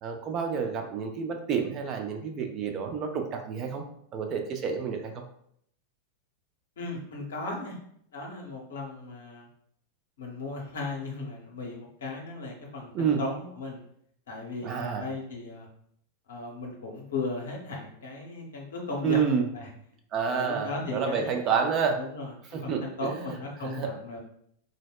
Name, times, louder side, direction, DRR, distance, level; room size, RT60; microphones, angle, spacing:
voice 1, 0.0-3.8 4.1-5.2 12.9-13.2 14.6-15.1 19.0-19.5 20.1-22.0 22.5-23.1 23.6-23.9, right 6 dB, 35° right, 4 dB, 0.4 m, -29 dB
voice 2, 6.8-7.8 8.1-9.5 10.2-13.8 14.3-15.7 16.3-19.7 20.3-21.6 22.0-22.3 22.6-24.2, left 3 dB, 60° left, 0 dB, 0.7 m, -36 dB
3.9 x 2.0 x 2.3 m, 0.68 s
figure-of-eight pair, 90°, 0 cm